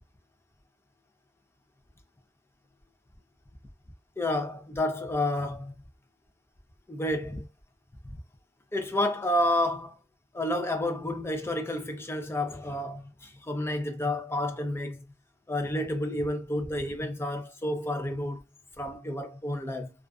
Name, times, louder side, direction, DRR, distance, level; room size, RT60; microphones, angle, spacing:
voice 1, 4.2-5.7 6.9-7.5 8.7-10.0 10.3-15.0 15.5-18.4 18.8-19.9, left 1 dB, 15° left, 0.4 m, -30 dB
2.4 x 2.3 x 2.3 m
head